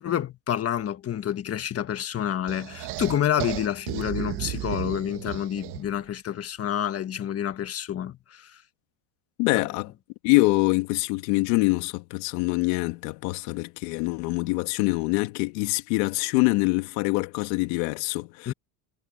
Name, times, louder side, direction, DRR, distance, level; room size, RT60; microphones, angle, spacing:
voice 1, 0.0-8.5 18.5-18.6, left 10 dB, 30° left, 1.5 m, -28 dB
sound 1, 2.5-6.0, right 17 dB, 55° right, 1.9 m, -34 dB
voice 2, 9.4-9.9 10.2-18.5, left 24 dB, 85° left, 1.9 m, -25 dB
cardioid pair, 145°, 47 cm